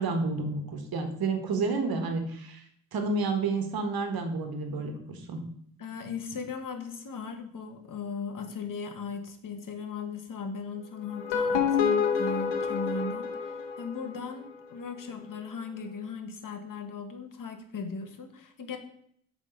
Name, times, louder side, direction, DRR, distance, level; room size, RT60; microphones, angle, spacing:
voice 1, 0.0-2.6 2.9-5.4, right 3 dB, 55° right, 6 dB, 1.5 m, -30 dB
voice 2, 5.8-18.8, left 5 dB, 45° left, 6 dB, 1.3 m, -38 dB
sound 1, 11.1-14.2, left 6 dB, 80° left, 1.2 m, -28 dB
7.4 x 3.7 x 5.2 m, 0.67 s
hypercardioid pair, 55°, 43 cm